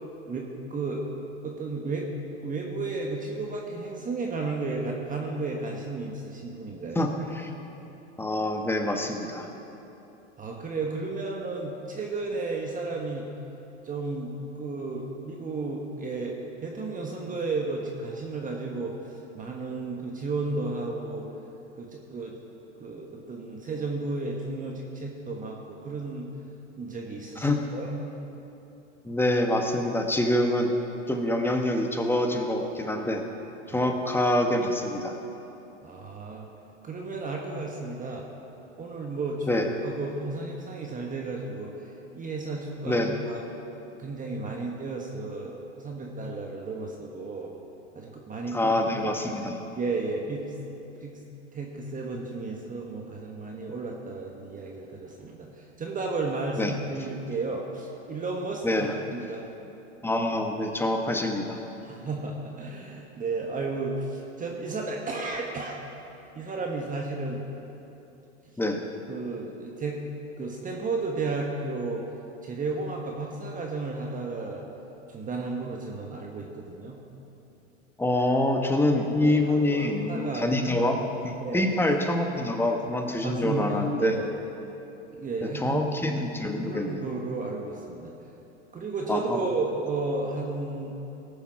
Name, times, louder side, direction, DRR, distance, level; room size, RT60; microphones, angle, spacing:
voice 1, 0.3-1.0 1.4-2.1 2.4-7.1 10.4-13.3 13.8-21.3 21.8-22.4 22.8-26.3 26.8-28.0 33.7-33.9 35.8-36.5 36.8-38.2 38.8-43.4 44.0-47.5 47.9-48.7 49.0-49.1 49.8-50.5 51.0-51.2 51.5-59.5 61.8-65.8 66.3-67.4 69.1-70.0 70.4-72.0 72.4-74.6 75.1-77.0 78.9-80.9 81.4-81.6 83.2-84.2 85.1-85.8 86.7-88.1 88.7-91.0, right 3 dB, 25° right, 0 dB, 1.4 m, -33 dB
voice 2, 6.9-7.5 8.2-9.5 27.4-27.6 29.0-30.7 31.1-33.2 33.7-35.2 39.5-39.7 42.8-43.1 48.5-49.6 56.6-56.7 58.6-59.0 60.0-61.6 68.6-68.8 78.0-81.0 81.2-84.1 85.6-87.1 89.1-89.4, left 1 dB, 5° left, 3 dB, 1.3 m, -26 dB
18.5 x 7.1 x 5.9 m, 3.0 s
hypercardioid pair, 105°, 35 cm